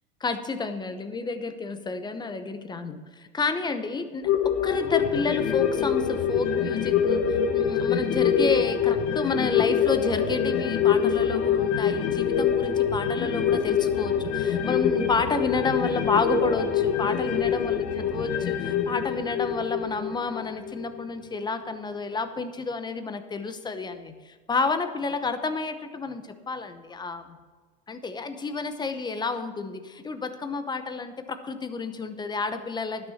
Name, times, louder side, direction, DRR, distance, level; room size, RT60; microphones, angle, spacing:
voice 1, 0.2-27.4 27.9-33.1, left 4 dB, 15° left, 9 dB, 0.8 m, -30 dB
sound 1, 4.2-21.0 21.4-21.5, left 7 dB, 50° left, 1.1 m, -25 dB
11.5 x 6.5 x 7.0 m, 1.4 s
supercardioid pair, 120°, 30 cm